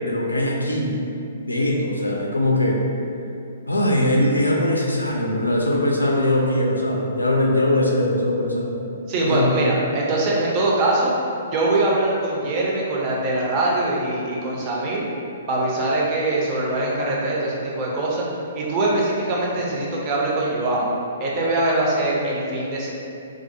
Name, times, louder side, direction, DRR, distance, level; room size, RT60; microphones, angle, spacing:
voice 1, 0.0-0.9 1.5-2.8 3.7-8.8 9.2-9.5, left 1 dB, 80° left, -1 dB, 0.4 m, -21 dB
voice 2, 9.1-11.1 11.5-15.1 15.5-18.3 18.5-20.9 21.2-22.9, right 2 dB, 30° right, -4 dB, 0.5 m, -22 dB
2.3 x 2.0 x 2.8 m, 2.6 s
figure-of-eight pair, 120°, 0 cm